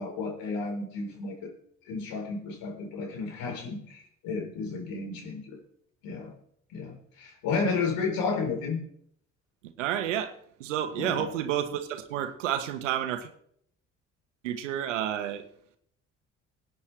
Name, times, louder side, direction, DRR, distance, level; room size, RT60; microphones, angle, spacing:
voice 1, 0.0-1.5 1.9-5.6 6.0-6.3 6.7-8.8 10.9-11.3, left 4 dB, 70° left, 4.2 m, -32 dB
voice 2, 9.8-10.3 10.6-13.3 14.4-15.4, right 10 dB, 85° right, 1.2 m, -30 dB
23.0 x 9.4 x 3.3 m
hypercardioid pair, 50°, 36 cm